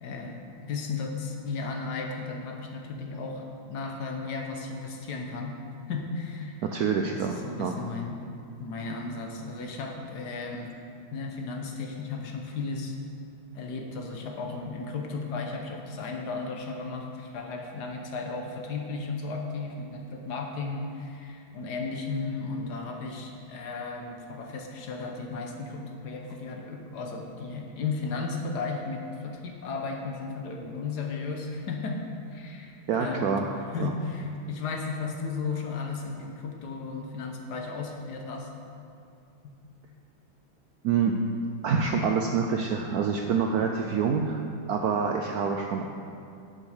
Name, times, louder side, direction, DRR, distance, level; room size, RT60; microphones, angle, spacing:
voice 1, 0.0-5.6 5.9-6.6 7.1-8.2 8.6-10.7 11.1-13.0 13.5-32.0 32.3-33.3 33.7-38.5 43.5-43.7, left 4 dB, 60° left, 2 dB, 1.3 m, -35 dB
voice 2, 6.6-7.8 32.9-33.5 33.8-33.9 40.8-41.1 41.6-44.4 44.7-45.9, right 6 dB, 75° right, 3 dB, 0.8 m, -26 dB
10.5 x 6.4 x 4.9 m, 2.5 s
omnidirectional pair, 2.1 m